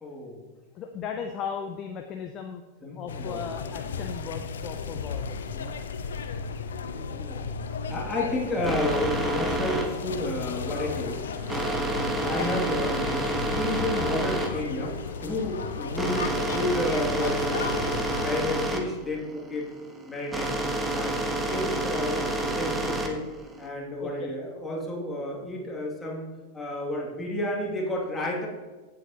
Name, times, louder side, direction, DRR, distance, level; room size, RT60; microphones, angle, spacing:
voice 1, 0.0-0.5 2.8-3.4 3.9-4.0 6.9-7.4 7.9-11.2 11.5-19.7 20.1-20.5 20.9-23.2 23.6-28.5, left 1 dB, 10° left, -2 dB, 2.7 m, -31 dB
voice 2, 0.7-2.6 2.9-5.7 24.0-24.3, left 7 dB, 30° left, 4 dB, 0.8 m, -37 dB
sound 1, 3.1-18.4, left 5 dB, 65° left, 0.7 m, -34 dB
sound 2, 8.6-23.7, right 2 dB, 10° right, 1.4 m, -29 dB
16.0 x 7.6 x 3.0 m, 1.3 s
figure-of-eight pair, 90°, 0 cm